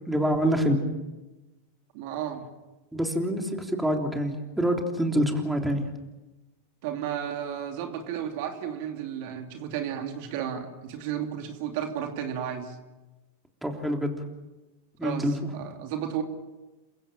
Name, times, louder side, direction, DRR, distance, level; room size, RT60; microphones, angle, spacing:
voice 1, 0.1-0.8 2.9-5.8 13.6-14.2 15.0-15.4, equal, 5° right, 2 dB, 3.4 m, -26 dB
voice 2, 1.9-2.4 6.8-12.8 15.0-16.2, right 9 dB, 60° right, 4 dB, 2.8 m, -33 dB
28.0 x 16.0 x 7.5 m, 1.1 s
hypercardioid pair, 110°, 0 cm